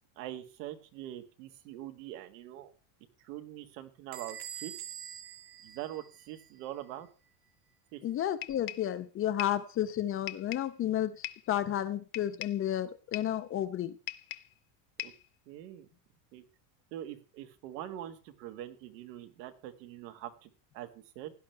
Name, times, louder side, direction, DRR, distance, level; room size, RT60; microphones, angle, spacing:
voice 1, 0.2-2.7 3.2-4.7 5.6-7.1 7.9-8.0 15.0-15.1 15.5-15.9 16.3-16.4 16.9-21.3, right 12 dB, 90° right, 1.9 m, -43 dB
Bell / Door, 4.1-6.6, right 9 dB, 55° right, 1.4 m, -45 dB
voice 2, 8.0-13.9, left 11 dB, 30° left, 0.6 m, -32 dB
sound 1, 8.4-8.9 9.4-9.7 10.3-10.7 11.2-11.5 12.1-12.6 13.1-13.4 14.1-14.6 15.0-15.3, left 19 dB, 60° left, 0.9 m, -41 dB
16.5 x 10.5 x 3.4 m
cardioid pair, 150°, 48 cm